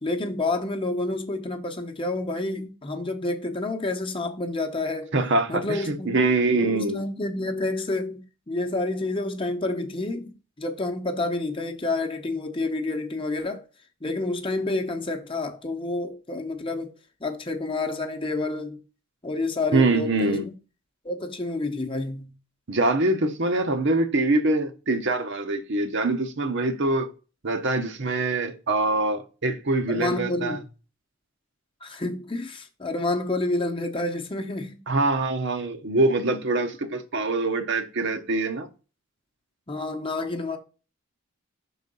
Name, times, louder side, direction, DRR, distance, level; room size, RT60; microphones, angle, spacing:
voice 1, 0.0-5.1 5.5-6.1 6.5-13.6 14.0-16.9 17.2-18.8 19.2-20.5 21.0-22.3 29.9-30.6 31.8-34.8 39.7-40.6, left 2 dB, 25° left, 0.9 m, -29 dB
voice 2, 5.1-7.0 19.7-20.5 22.7-27.1 27.4-30.6 34.9-38.7, right 2 dB, 60° right, 0.9 m, -24 dB
5.7 x 4.0 x 5.3 m
head